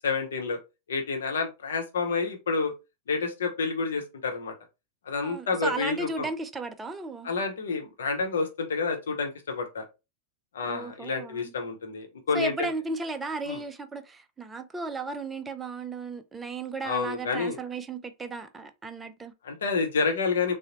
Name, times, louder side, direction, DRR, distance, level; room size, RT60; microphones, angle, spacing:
voice 1, 0.0-0.6 0.9-2.7 3.1-4.5 5.1-6.3 7.2-9.8 10.5-12.7 13.5-13.6 16.8-17.6 19.4-20.5, left 4 dB, 65° left, 0.7 m, -29 dB
voice 2, 5.2-7.3 10.7-11.5 12.3-19.3, right 3 dB, 15° right, 0.4 m, -35 dB
3.7 x 2.0 x 2.8 m
figure-of-eight pair, 90°, 0 cm